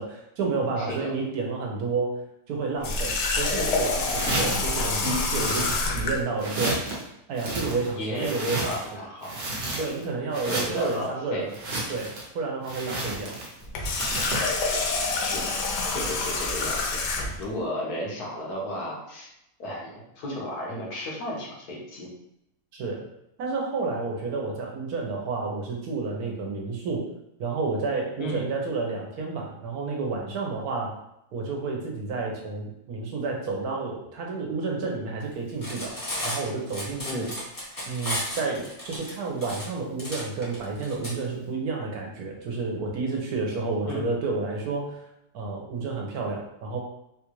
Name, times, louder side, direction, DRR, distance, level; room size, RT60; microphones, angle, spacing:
voice 1, 0.0-2.1 2.5-7.0 7.3-8.7 9.8-11.5 11.9-13.4 22.7-23.1 23.4-27.1 27.4-31.0 31.3-35.9 36.2-37.3 37.9-45.1 45.3-46.8, right 3 dB, 70° right, 0 dB, 1.2 m, -30 dB
voice 2, 0.8-1.1 4.3-4.4 7.9-9.3 9.8-9.9 10.5-11.4 15.1-15.6 15.9-17.0 17.4-19.3 19.6-22.1 28.2-28.4 37.0-37.3 43.9-44.0, left 1 dB, 70° left, -3 dB, 1.4 m, -34 dB
Water tap faucet, 2.8-6.2 13.6-17.5, left 3 dB, 85° left, 1.2 m, -27 dB
sound 1, 4.0-4.7 5.2-6.1 6.4-7.0 7.3-8.9 9.2-10.0 10.3-11.0 11.5-12.3 12.6-13.6 14.0-14.6, right 2 dB, 55° right, 1.0 m, -32 dB
Cutlery silverware, 35.5-41.1, left 1 dB, 25° left, 0.4 m, -34 dB
3.6 x 2.4 x 3.0 m, 0.82 s
omnidirectional pair, 1.7 m